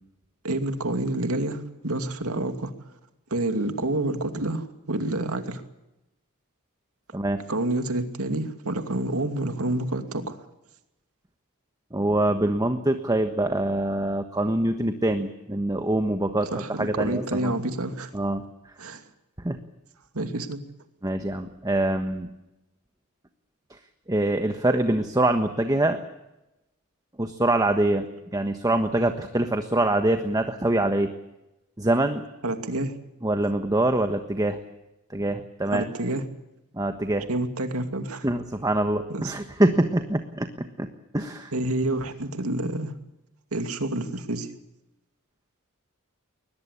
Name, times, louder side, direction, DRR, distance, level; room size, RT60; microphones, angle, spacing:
voice 1, 0.4-2.7 3.3-5.6 7.5-10.4 16.5-18.1 18.8-19.0 20.1-20.6 32.4-32.9 35.7-36.2 37.3-38.3 39.1-39.3 41.5-42.9 43.5-44.5, right 1 dB, 70° right, 7 dB, 2.6 m, -28 dB
voice 2, 11.9-16.5 16.8-17.5 18.1-18.4 19.4-19.6 21.0-22.3 24.1-26.0 27.2-28.0 28.3-31.1 31.8-32.2 33.2-34.6 35.1-35.8 36.7-37.3 38.2-40.9 41.1-41.5, right 1 dB, 15° right, 7 dB, 1.3 m, -24 dB
21.5 x 21.0 x 8.5 m, 0.93 s
head